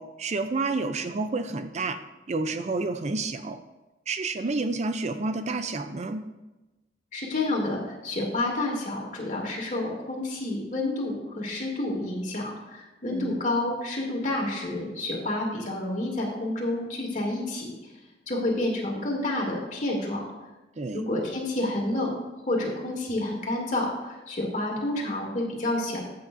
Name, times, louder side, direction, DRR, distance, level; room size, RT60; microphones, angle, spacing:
voice 1, 0.0-2.0 2.3-3.6 4.1-6.2 13.1-13.4 20.8-21.0, right 3 dB, 40° right, 9 dB, 0.5 m, -29 dB
voice 2, 7.1-17.8 18.3-20.2 20.9-22.1 22.5-26.0, left 2 dB, 45° left, -2 dB, 2.6 m, -29 dB
14.0 x 8.6 x 2.6 m, 1.1 s
head